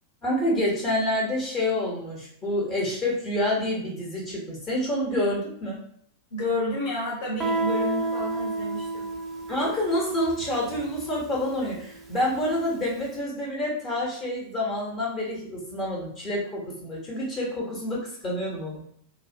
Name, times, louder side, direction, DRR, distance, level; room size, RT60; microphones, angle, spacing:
voice 1, 0.2-5.8 9.5-18.8, left 1 dB, 30° left, -4 dB, 0.8 m, -28 dB
voice 2, 6.3-9.1, left 2 dB, 55° left, -5 dB, 0.9 m, -30 dB
Guitar, 7.4-12.8, right 3 dB, 15° right, 0.4 m, -31 dB
2.2 x 2.1 x 2.6 m, 0.65 s
figure-of-eight pair, 90°, 0 cm